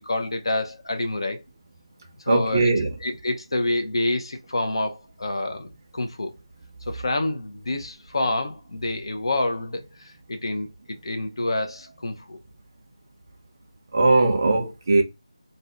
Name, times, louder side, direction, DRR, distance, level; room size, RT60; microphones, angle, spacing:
voice 1, 0.0-1.4 2.2-2.7 3.0-6.3 6.9-12.4, left 2 dB, 60° left, 0.7 m, -28 dB
voice 2, 2.3-2.9 13.9-15.0, right 3 dB, 35° right, 0.6 m, -19 dB
2.6 x 2.2 x 3.5 m
figure-of-eight pair, 165°, 3 cm